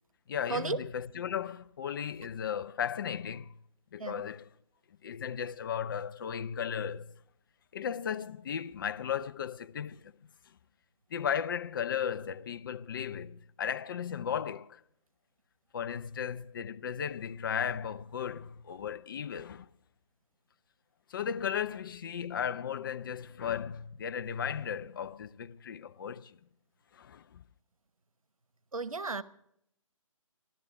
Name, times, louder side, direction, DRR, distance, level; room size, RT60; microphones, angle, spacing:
voice 1, 0.3-3.5 3.9-4.5 5.0-7.1 7.7-10.1 11.1-14.8 15.7-19.7 21.1-26.4 26.9-27.4, left 8 dB, 40° left, 0.5 m, -35 dB
voice 2, 28.7-29.2, right 4 dB, 90° right, 0.9 m, -34 dB
14.5 x 12.0 x 5.9 m
figure-of-eight pair, 140°, 17 cm